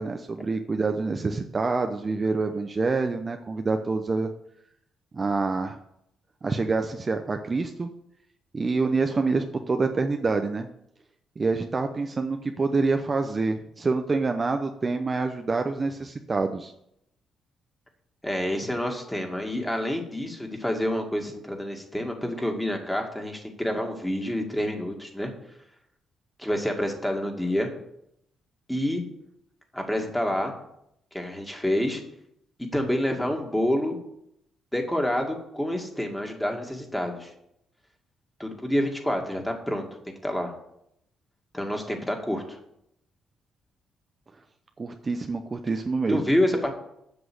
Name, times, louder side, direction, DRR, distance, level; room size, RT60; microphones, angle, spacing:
voice 1, 0.0-4.3 5.1-5.8 6.4-7.9 8.5-10.7 11.4-16.7 44.8-46.3, right 3 dB, 30° right, 6 dB, 0.7 m, -26 dB
voice 2, 18.2-25.3 26.4-27.8 28.7-29.0 29.7-30.5 31.1-32.0 32.6-34.0 34.7-37.3 38.4-40.5 41.5-42.6 46.1-46.7, left 1 dB, 5° left, 3 dB, 2.2 m, -28 dB
7.9 x 6.1 x 7.9 m, 0.76 s
cardioid pair, 90°, 0 cm